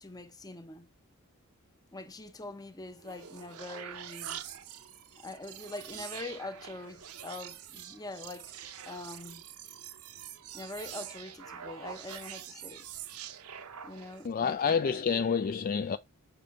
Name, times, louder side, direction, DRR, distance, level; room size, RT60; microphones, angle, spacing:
voice 1, 0.0-0.9 1.9-4.4 5.2-8.6 8.9-9.4 10.5-12.9 13.8-14.9, left 2 dB, 15° left, 0.7 m, -44 dB
sound 1, 2.9-14.3, right 9 dB, 70° right, 0.7 m, -45 dB
voice 2, 14.2-16.0, left 6 dB, 40° left, 0.3 m, -28 dB
6.7 x 2.7 x 5.6 m
head